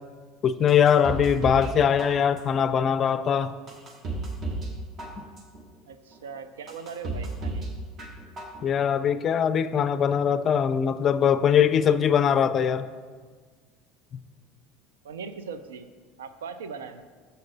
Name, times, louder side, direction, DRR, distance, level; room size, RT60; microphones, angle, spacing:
voice 1, 0.4-3.5 8.6-12.9, left 8 dB, 40° left, 13 dB, 0.4 m, -22 dB
sound 1, 0.7-1.7 2.0-2.6 3.1-3.2 3.7-4.7 5.0-5.6 6.1-6.2 6.7-7.7 8.0-8.6 8.9-9.0, right 2 dB, 40° right, 1.2 m, -33 dB
voice 2, 5.8-7.7 15.0-15.9 16.2-17.0, right 5 dB, 85° right, 11 dB, 0.4 m, -39 dB
6.6 x 6.5 x 4.0 m, 1.5 s
hypercardioid pair, 85°, 0 cm